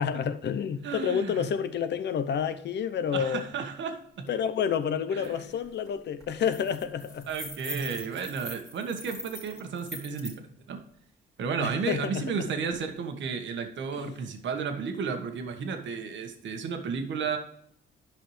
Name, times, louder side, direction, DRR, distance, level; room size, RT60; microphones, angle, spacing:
voice 1, 0.0-3.5 4.3-7.3 11.6-12.2 13.9-14.1, left 7 dB, 60° left, 0.8 m, -29 dB
voice 2, 0.8-1.5 3.1-4.3 5.1-5.4 7.3-10.8 11.4-17.4, right 5 dB, 70° right, 1.4 m, -33 dB
sound 1, 5.2-5.3 5.6-5.9 6.2-10.4, equal, 15° left, 2.2 m, -42 dB
11.0 x 5.7 x 3.2 m
cardioid pair, 90°, 20 cm